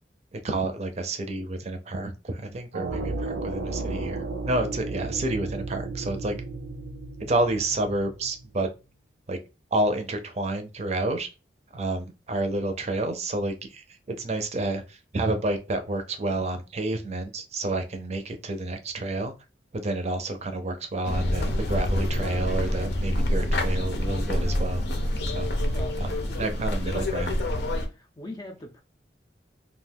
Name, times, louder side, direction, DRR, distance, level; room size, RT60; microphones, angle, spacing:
voice 1, 0.3-6.3 7.3-8.7 9.3-9.4 9.7-11.3 11.7-19.3 19.7-24.9 25.3-25.5 26.0-26.1 26.4-27.4, right 2 dB, 40° right, 0.5 m, -29 dB
sound 1, 2.7-8.6, right 3 dB, 85° right, 0.5 m, -34 dB
sound 2, 21.0-27.9, left 1 dB, 70° left, 0.6 m, -27 dB
voice 2, 25.7-27.2 27.9-28.8, left 1 dB, 25° left, 0.4 m, -42 dB
2.4 x 2.3 x 3.3 m
head